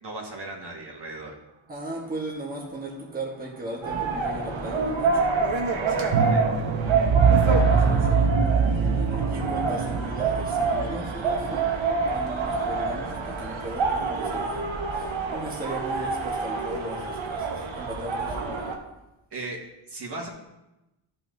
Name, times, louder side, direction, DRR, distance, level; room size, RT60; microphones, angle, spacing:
voice 1, 0.0-1.3 5.7-6.6 19.3-19.6 19.9-20.3, right 2 dB, 55° right, -1 dB, 1.8 m, -37 dB
voice 2, 1.7-5.3 7.4-11.7 12.1-14.6 14.9-18.7, right 1 dB, 20° right, -2 dB, 1.2 m, -37 dB
sound 1, 3.8-18.8, right 4 dB, 70° right, 1.1 m, -27 dB
sound 2, 4.4-12.6 12.8-12.9, right 5 dB, 90° right, 0.8 m, -25 dB
13.0 x 5.7 x 2.7 m, 0.97 s
wide cardioid pair, 100°, 48 cm